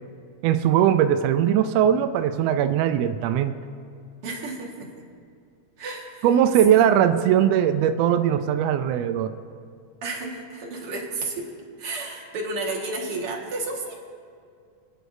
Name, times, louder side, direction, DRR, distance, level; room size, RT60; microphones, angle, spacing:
voice 1, 0.4-3.6 6.2-9.3, right 10 dB, 90° right, 9 dB, 1.4 m, -20 dB
voice 2, 4.2-4.9 5.8-6.3 10.0-11.5 11.8-13.9, right 2 dB, 50° right, -2 dB, 2.4 m, -32 dB
27.0 x 10.0 x 2.7 m, 2.3 s
omnidirectional pair, 3.5 m